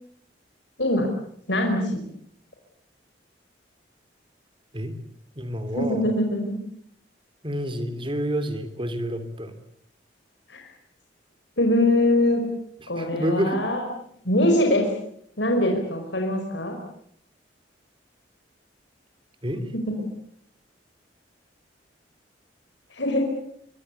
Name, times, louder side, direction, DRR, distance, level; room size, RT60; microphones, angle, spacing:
voice 1, 0.8-1.1 1.5-2.0 5.7-6.6 10.5-10.7 11.6-12.4 12.9-13.8 14.2-14.9 15.4-16.7 19.7-19.9 22.9-23.2, left 1 dB, 70° left, 2 dB, 5.1 m, -22 dB
voice 2, 5.3-6.0 7.4-9.5 12.8-13.6 19.4-19.6, equal, 30° right, 11 dB, 3.3 m, -28 dB
26.0 x 23.0 x 8.3 m, 0.69 s
head